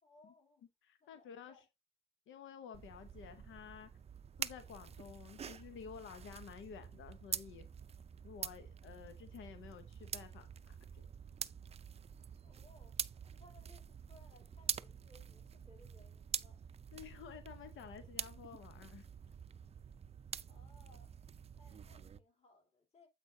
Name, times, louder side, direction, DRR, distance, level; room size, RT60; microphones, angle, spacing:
voice 1, 0.0-0.7 1.0-1.7 12.4-13.0 13.3-16.6 20.5-21.1 21.6-23.1, left 2 dB, 30° left, 3.0 m, -65 dB
voice 2, 0.8-1.6 2.3-3.9 4.4-7.7 8.2-11.1 16.9-19.1, left 7 dB, 80° left, 0.8 m, -52 dB
sound 1, 2.7-22.2, right 7 dB, 30° right, 0.4 m, -46 dB
8.2 x 5.0 x 2.7 m
cardioid pair, 90°, 20 cm